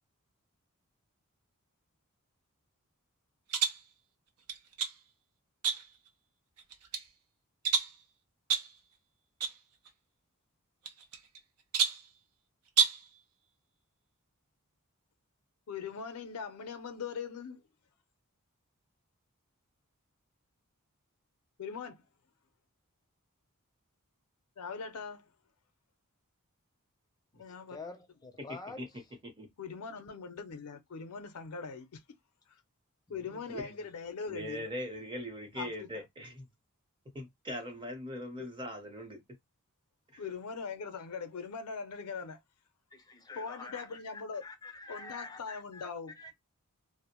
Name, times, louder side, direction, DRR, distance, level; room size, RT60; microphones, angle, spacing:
sound 1, 3.5-3.9 4.5-5.0 5.6-6.1 6.6-7.1 7.6-8.0 8.5-8.8 9.4-9.6 9.9-10.0 10.8-11.4 11.7-12.1 12.7-13.1, right 6 dB, 85° right, 0.5 m, -30 dB
voice 1, 15.7-17.6 21.6-22.0 24.6-25.3 27.3-27.8 29.6-32.0 33.1-34.7 35.6-36.0 38.4-38.5 40.2-42.4 43.4-44.4 44.9-46.3, left 5 dB, 80° left, 0.5 m, -41 dB
voice 2, 27.7-28.8 33.1-33.8 42.9-45.9 46.2-46.3, left 3 dB, 15° left, 0.5 m, -47 dB
voice 3, 34.3-36.5 37.1-39.2 40.1-40.2, equal, 20° right, 0.8 m, -40 dB
2.5 x 2.0 x 2.9 m
head